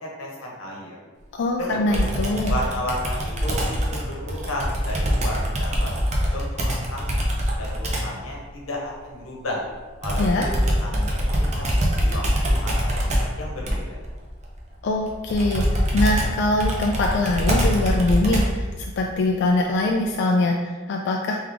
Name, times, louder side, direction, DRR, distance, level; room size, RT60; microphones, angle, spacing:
voice 1, 0.0-1.0 1.6-2.0 2.5-6.0 6.3-7.2 7.5-9.6 10.0-11.6 11.9-14.0, left 1 dB, 90° left, -2 dB, 1.0 m, -33 dB
voice 2, 1.3-2.6 10.2-10.5 14.8-15.6 15.9-21.4, left 2 dB, 55° left, 1 dB, 0.3 m, -23 dB
Computer keyboard, 1.9-8.2 10.0-18.7, equal, 35° right, 0.6 m, -24 dB
3.5 x 3.3 x 3.4 m, 1.4 s
head